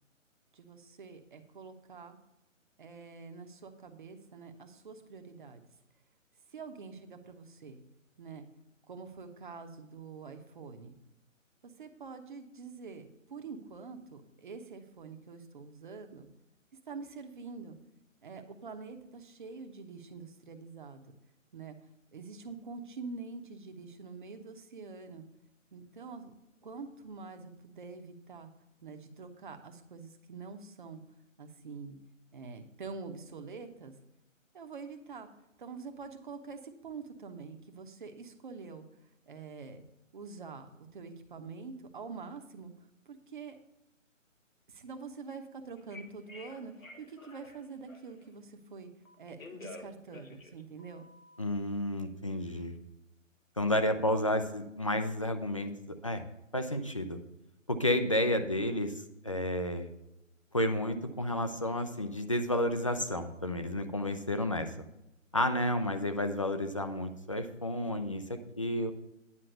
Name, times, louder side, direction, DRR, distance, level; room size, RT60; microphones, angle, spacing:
voice 1, 0.5-2.2 2.8-5.6 6.5-7.8 8.2-8.5 8.9-10.9 11.6-16.3 16.9-17.8 18.2-21.0 21.5-21.8 22.1-25.3 25.7-26.3 26.6-28.5 28.8-31.0 31.4-32.0 32.3-33.9 34.5-35.3 35.6-38.8 39.3-39.8 40.1-40.7 40.9-43.6 44.7-48.9 49.2-51.1, right 4 dB, 40° right, 6 dB, 1.0 m, -46 dB
Telephone, 45.8-48.3 49.1-51.4, left 3 dB, 90° left, 1.5 m, -50 dB
voice 2, 51.4-52.7 53.6-55.7 56.0-56.2 56.5-57.2 57.7-58.9 59.2-59.9 60.5-64.7 65.3-68.9, left 1 dB, 25° left, 7 dB, 0.5 m, -31 dB
9.8 x 5.7 x 6.7 m, 0.89 s
figure-of-eight pair, 150°, 39 cm